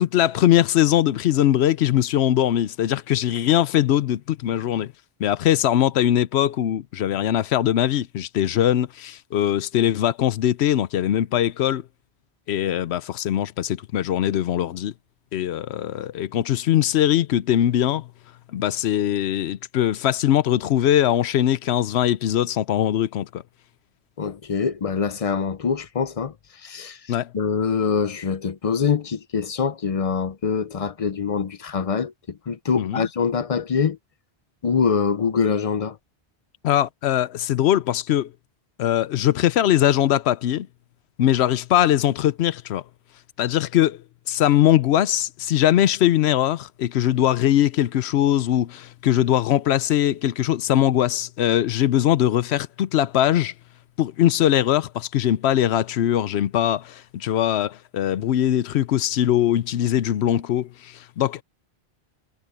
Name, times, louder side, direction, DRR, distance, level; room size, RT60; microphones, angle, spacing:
voice 1, 0.0-4.9 5.2-11.8 12.5-14.9 15.3-18.1 18.5-23.4 27.1-27.3 32.7-33.1 36.6-38.3 38.8-40.7 41.2-42.8 43.4-44.0 44.3-53.5 54.0-61.4, left 11 dB, 90° left, 0.9 m, -21 dB
voice 2, 24.2-26.3 26.6-27.0 27.3-34.0 34.6-36.0, left 6 dB, 40° left, 0.6 m, -24 dB
omnidirectional pair, 1.1 m